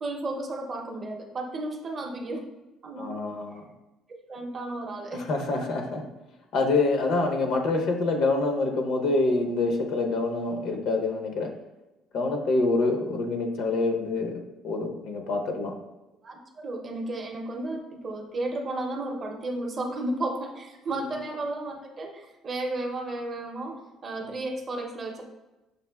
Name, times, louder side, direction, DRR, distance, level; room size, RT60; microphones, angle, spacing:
voice 1, 0.0-2.5 2.8-3.3 4.3-5.3 16.2-25.2, right 2 dB, 35° right, 3 dB, 0.6 m, -33 dB
voice 2, 3.0-3.6 5.1-6.0 6.5-11.5 12.1-15.7, left 3 dB, 70° left, 3 dB, 0.7 m, -26 dB
6.5 x 2.5 x 2.3 m, 1.0 s
cardioid pair, 140°, 0 cm